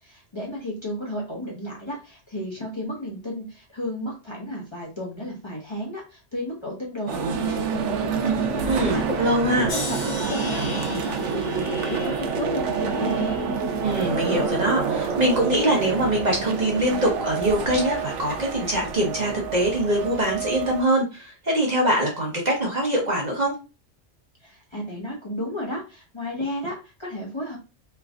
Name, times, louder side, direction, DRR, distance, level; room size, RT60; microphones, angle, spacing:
voice 1, 0.0-9.0 9.6-13.4 24.4-27.6, left 1 dB, 25° left, -4 dB, 1.0 m, -33 dB
sound 1, 7.1-20.8, right 5 dB, 80° right, 0.9 m, -27 dB
voice 2, 8.6-9.7 13.8-23.5, right 1 dB, 40° right, -1 dB, 1.0 m, -23 dB
sound 2, 9.7-14.8 15.3-16.0 16.7-17.0, left 2 dB, 90° left, 1.2 m, -39 dB
3.3 x 3.1 x 2.4 m, 0.30 s
omnidirectional pair, 1.2 m